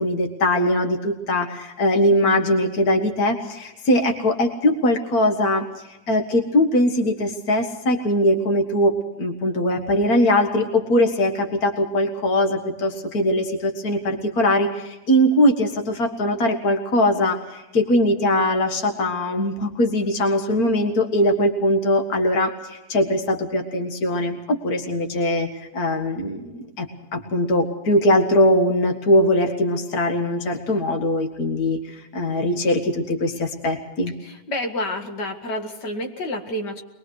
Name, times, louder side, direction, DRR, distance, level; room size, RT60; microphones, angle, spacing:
voice 1, 0.0-5.6 6.1-34.1, left 1 dB, 60° left, 4 dB, 2.2 m, -21 dB
voice 2, 34.2-36.8, left 1 dB, 80° left, 4 dB, 2.6 m, -29 dB
23.0 x 21.5 x 6.4 m, 0.99 s
omnidirectional pair, 1.8 m